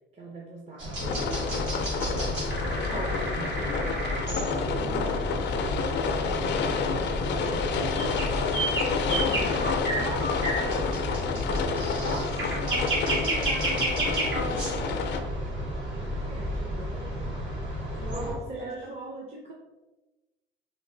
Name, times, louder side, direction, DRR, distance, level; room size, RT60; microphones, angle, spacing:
voice 1, 0.1-1.8 2.7-4.0 4.6-8.3 9.9-10.8 15.9-17.3 18.1-19.5, right 2 dB, 30° right, -2 dB, 0.6 m, -42 dB
sound 1, 0.8-18.3, equal, 75° right, 1.5 m, -31 dB
sound 2, 1.0-15.2, left 5 dB, 65° left, 0.4 m, -30 dB
voice 2, 4.8-5.2 9.0-10.8 11.9-15.0 17.9-18.7, right 1 dB, 55° right, -2 dB, 1.4 m, -39 dB
3.2 x 2.5 x 3.7 m, 1.1 s
cardioid pair, 90°, 20 cm